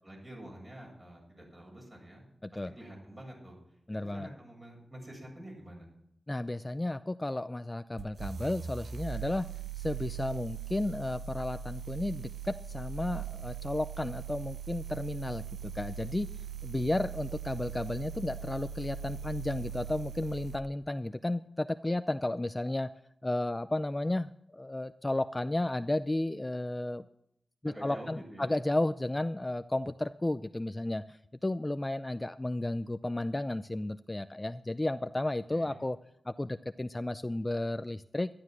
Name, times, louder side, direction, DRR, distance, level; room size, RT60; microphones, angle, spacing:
voice 1, 0.0-2.2 2.7-3.6 4.1-5.9 27.6-28.6 35.5-35.8, right 1 dB, 30° right, -1 dB, 7.4 m, -47 dB
voice 2, 2.4-2.7 3.9-4.3 6.3-9.5 9.8-16.3 16.6-22.9 23.2-27.1 27.6-36.0 36.3-38.3, left 1 dB, 20° left, 11 dB, 0.4 m, -33 dB
sound 1, 8.0-20.7, right 8 dB, 80° right, 0.7 m, -40 dB
12.0 x 11.5 x 6.2 m, 0.73 s
cardioid pair, 65°, 0 cm